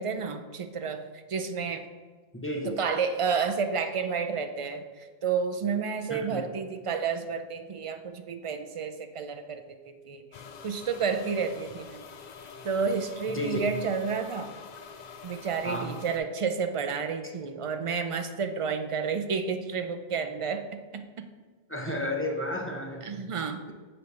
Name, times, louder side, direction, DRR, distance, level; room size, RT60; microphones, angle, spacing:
voice 1, 0.0-1.9 2.6-10.2 10.6-12.0 12.6-14.6 15.2-21.3 21.9-22.1 23.0-23.7, right 5 dB, 55° right, 8 dB, 0.3 m, -31 dB
voice 2, 2.3-2.7 6.1-6.4 13.3-13.6 15.6-15.9 21.7-23.4, left 1 dB, 15° left, 0 dB, 0.6 m, -32 dB
sound 1, 10.3-16.2, left 6 dB, 55° left, 0.5 m, -46 dB
6.9 x 3.2 x 5.3 m, 1.4 s
omnidirectional pair, 1.0 m